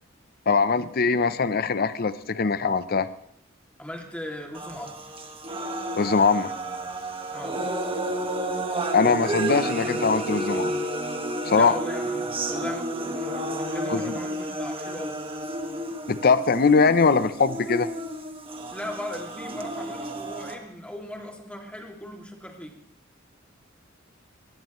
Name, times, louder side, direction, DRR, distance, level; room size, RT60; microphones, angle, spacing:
voice 1, 0.5-3.1 5.9-6.5 8.9-10.8 11.4-11.8 13.9-14.2 16.1-17.9, left 4 dB, 50° left, 13 dB, 0.7 m, -21 dB
voice 2, 3.8-5.0 7.3-7.6 11.5-15.2 18.7-22.7, left 1 dB, 5° left, 1 dB, 2.5 m, -38 dB
sound 1, 4.5-20.5, right 1 dB, 30° right, 1.7 m, -31 dB
23.0 x 19.5 x 3.1 m, 0.69 s
head